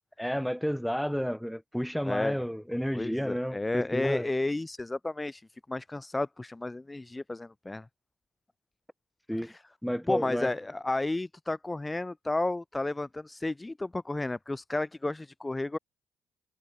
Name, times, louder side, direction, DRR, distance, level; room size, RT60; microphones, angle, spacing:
voice 1, 0.2-4.3 9.3-9.5 9.8-10.5, equal, ahead, 3.0 m, -31 dB
voice 2, 2.9-7.9 9.4-9.6 10.1-15.8, left 2 dB, 20° left, 1.6 m, -32 dB
hypercardioid pair, 50°, 0 cm